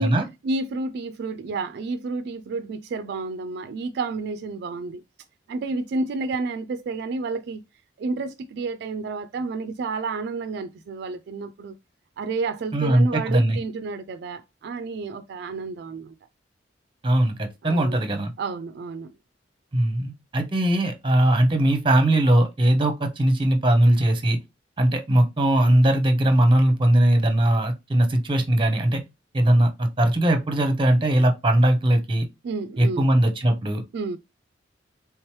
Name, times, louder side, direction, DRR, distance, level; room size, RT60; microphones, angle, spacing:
voice 1, 0.4-5.0 5.5-7.6 8.0-11.7 12.2-16.1 17.6-18.0 18.4-19.1 32.4-33.1 33.9-34.2, right 3 dB, 60° right, 0.3 m, -30 dB
voice 2, 12.7-13.6 17.0-18.3 19.7-24.4 24.8-29.0 29.3-32.2 32.8-33.8, right 1 dB, 25° right, 0.7 m, -20 dB
3.4 x 3.1 x 3.0 m
head